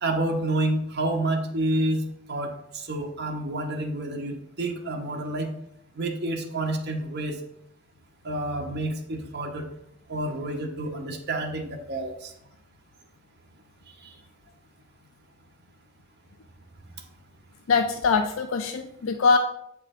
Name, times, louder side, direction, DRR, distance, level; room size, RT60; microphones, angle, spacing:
voice 1, 0.0-2.0 2.3-5.5 5.9-7.4 8.2-9.7 10.1-12.3 14.0-14.1, right 2 dB, 55° right, 2 dB, 1.1 m, -29 dB
voice 2, 17.7-19.4, left 4 dB, 70° left, 6 dB, 0.4 m, -22 dB
7.7 x 4.8 x 3.7 m, 0.76 s
head